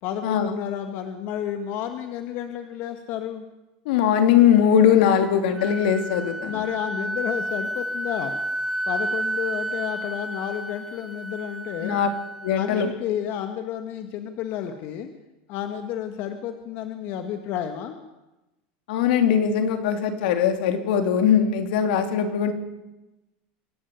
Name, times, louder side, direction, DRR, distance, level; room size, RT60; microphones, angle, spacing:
voice 1, 0.0-3.4 6.4-8.3 8.9-12.0 12.5-15.1 15.5-18.0, left 10 dB, 45° left, 7 dB, 1.7 m, -31 dB
voice 2, 3.8-6.6 11.8-12.1 12.4-12.9 18.9-22.5, left 8 dB, 75° left, 6 dB, 3.2 m, -20 dB
Wind instrument woodwind instrument, 5.2-12.9, right 1 dB, 5° right, 1.4 m, -31 dB
25.0 x 11.0 x 9.4 m, 1.0 s
supercardioid pair, 155°, 5 cm